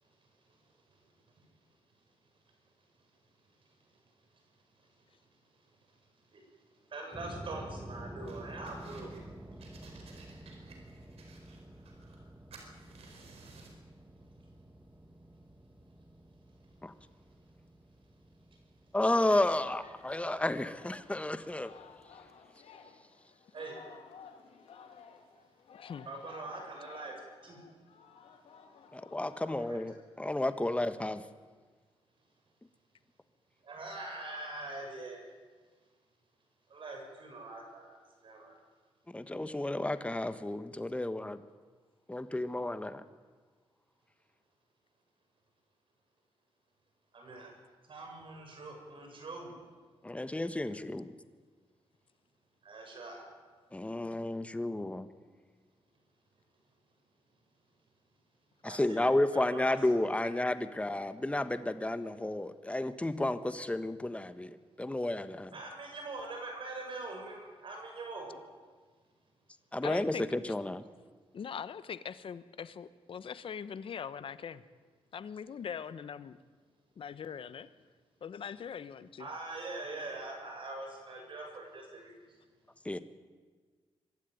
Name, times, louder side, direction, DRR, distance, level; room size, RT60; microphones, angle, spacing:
voice 1, 6.9-9.1 23.5-23.8 26.1-27.6 29.7-29.8 33.6-35.2 36.7-38.0 38.2-38.5 47.1-47.5 47.9-49.5 52.6-53.2 58.6-59.1 59.5-59.8 65.5-68.4 79.2-82.1, right 2 dB, 55° right, 2 dB, 7.0 m, -43 dB
sound 1, 7.1-22.3, right 1 dB, 20° right, 2.4 m, -51 dB
sound 2, 8.3-9.2 9.6-12.3 12.5-13.8, right 4 dB, 80° right, 4.6 m, -55 dB
voice 2, 18.9-21.7 28.9-31.3 39.1-41.4 42.1-43.0 50.0-51.1 53.7-55.1 58.6-65.5 69.7-70.8 82.8-83.0, left 1 dB, 10° left, 12 dB, 1.3 m, -32 dB
Singing, 19.9-29.6, left 6 dB, 80° left, 2.3 m, -56 dB
voice 3, 69.8-70.5 71.3-74.6 75.1-76.4 77.0-77.7 78.2-79.3, left 7 dB, 60° left, 15 dB, 1.0 m, -41 dB
24.5 x 13.0 x 9.3 m, 1.5 s
cardioid pair, 85°, 10 cm